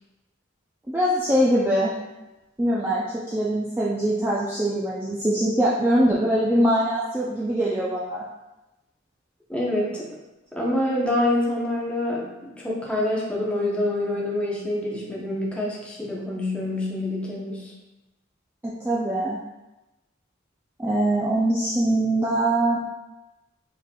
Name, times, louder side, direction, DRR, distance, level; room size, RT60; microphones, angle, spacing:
voice 1, 0.9-1.9 2.6-8.2 18.6-19.4 20.8-22.8, right 1 dB, 10° right, -6 dB, 0.4 m, -22 dB
voice 2, 9.5-10.1 10.5-17.7, left 1 dB, 5° left, -4 dB, 0.8 m, -26 dB
4.7 x 4.3 x 2.3 m, 1.0 s
head